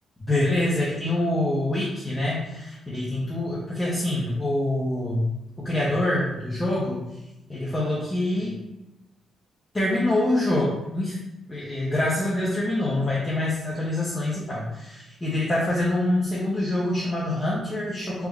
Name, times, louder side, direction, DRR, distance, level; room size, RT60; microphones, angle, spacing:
voice 1, 0.3-5.3 5.6-7.0 7.5-8.5 9.7-11.2 11.5-18.3, left 1 dB, 15° left, -6 dB, 0.6 m, -25 dB
3.4 x 2.0 x 3.5 m, 0.95 s
cardioid pair, 140°, 0 cm